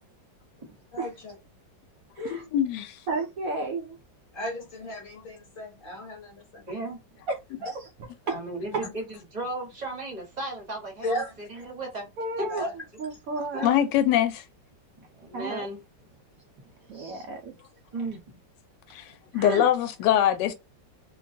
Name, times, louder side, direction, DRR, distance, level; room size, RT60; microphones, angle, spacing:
voice 1, 0.9-1.3 2.2-2.4 4.3-6.7 7.6-7.7 8.2-8.3 8.8-8.9 11.0-11.4 12.5-12.7 13.5-13.7, left 1 dB, 35° left, 1.0 m, -35 dB
voice 2, 2.3-3.0 13.6-14.4 18.9-19.0 19.3-20.5, left 11 dB, 75° left, 1.1 m, -23 dB
voice 3, 3.1-4.0 7.6-7.8 8.3-8.4 8.7-8.8 12.2-12.6 13.0-13.8 15.3-15.7 16.9-17.5 19.3-19.7, right 3 dB, 80° right, 0.7 m, -32 dB
voice 4, 6.7-7.0 8.3-12.1 12.4-12.7 15.0-15.8 17.9-18.2, right 2 dB, 35° right, 0.7 m, -35 dB
3.0 x 2.2 x 2.6 m
omnidirectional pair, 2.0 m